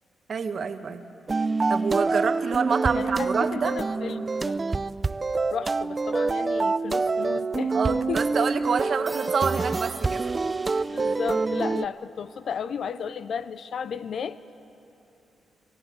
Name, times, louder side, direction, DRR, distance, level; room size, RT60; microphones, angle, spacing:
voice 1, 0.3-1.0 1.7-3.7 7.7-10.3, right 5 dB, 55° right, 9 dB, 1.2 m, -27 dB
sound 1, 1.3-11.9, right 3 dB, 30° right, 0.4 m, -26 dB
voice 2, 2.9-4.6 5.5-8.5 10.9-14.4, left 7 dB, 65° left, 15 dB, 0.5 m, -34 dB
26.0 x 16.5 x 7.9 m, 2.9 s
cardioid pair, 65°, 0 cm